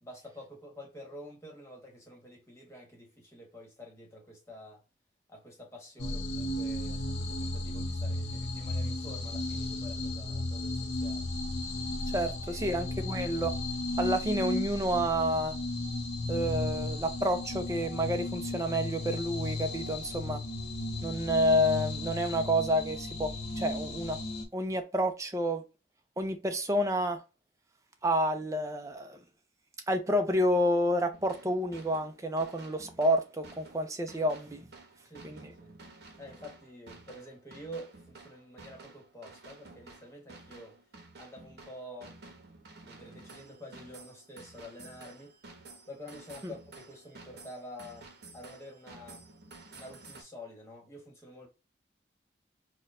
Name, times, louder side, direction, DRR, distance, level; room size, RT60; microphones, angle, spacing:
voice 1, 0.0-4.8 5.3-11.3 12.1-12.2 12.5-12.9 35.0-35.8 36.2-40.8 41.2-42.1 42.8-45.3 45.9-49.2 49.7-51.5, left 1 dB, 15° left, 1.1 m, -48 dB
sound 1, 6.0-24.5, left 2 dB, 75° left, 0.7 m, -35 dB
voice 2, 12.1-13.5 14.0-15.6 16.3-20.4 21.0-23.3 23.6-24.2 24.5-25.6 26.2-27.2 28.0-29.2 29.9-34.7 35.2-35.5 46.4-46.5, equal, 15° right, 0.4 m, -29 dB
sound 2, 31.1-50.2, right 3 dB, 70° right, 0.9 m, -52 dB
4.3 x 2.2 x 2.4 m
head